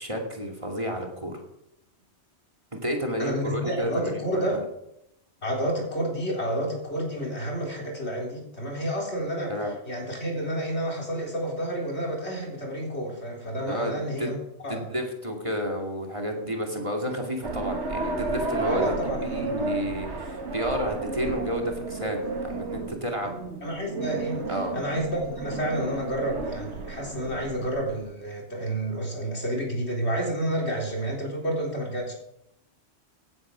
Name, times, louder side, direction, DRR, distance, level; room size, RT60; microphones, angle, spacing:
voice 1, 0.0-1.4 2.8-4.6 9.5-9.7 13.7-14.3 14.7-18.9 19.3-23.4 24.5-24.7, equal, 25° right, 1 dB, 2.4 m, -31 dB
voice 2, 3.2-4.6 5.4-14.9 18.7-19.7 23.6-32.1, right 1 dB, 70° left, 0 dB, 4.0 m, -30 dB
sound 1, 17.4-28.1, right 3 dB, 75° right, 1.9 m, -32 dB
16.5 x 9.4 x 6.2 m, 0.82 s
omnidirectional pair, 1.2 m